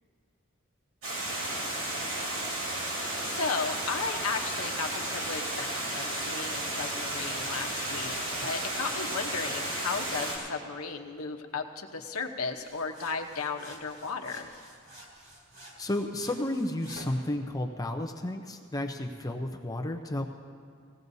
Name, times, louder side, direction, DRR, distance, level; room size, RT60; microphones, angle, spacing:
Water, 1.0-10.4, right 1 dB, 75° right, 3.9 m, -33 dB
voice 1, 2.8-8.2 8.4-14.5, left 4 dB, 90° left, 3 dB, 0.9 m, -35 dB
sound 1, 12.6-17.2, right 1 dB, 45° right, 3.1 m, -50 dB
voice 2, 15.8-20.3, left 1 dB, 15° left, 3 dB, 0.6 m, -32 dB
19.5 x 16.5 x 2.7 m, 2.2 s
head